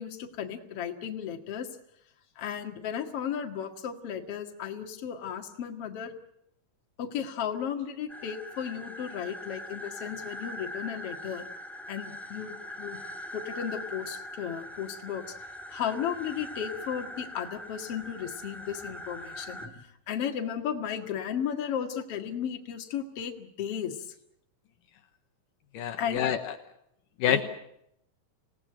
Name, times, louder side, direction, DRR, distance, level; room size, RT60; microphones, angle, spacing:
voice 1, 0.0-1.7 2.4-6.1 7.0-11.5 11.9-13.0 13.3-15.2 15.7-24.1 26.0-26.3 27.3-27.4, left 8 dB, 50° left, 4 dB, 2.6 m, -34 dB
sound 1, 8.1-19.7, equal, ahead, 1.4 m, -42 dB
voice 2, 25.7-26.5 27.2-27.4, left 9 dB, 75° left, 7 dB, 2.6 m, -27 dB
26.5 x 18.5 x 9.0 m, 0.78 s
omnidirectional pair, 4.0 m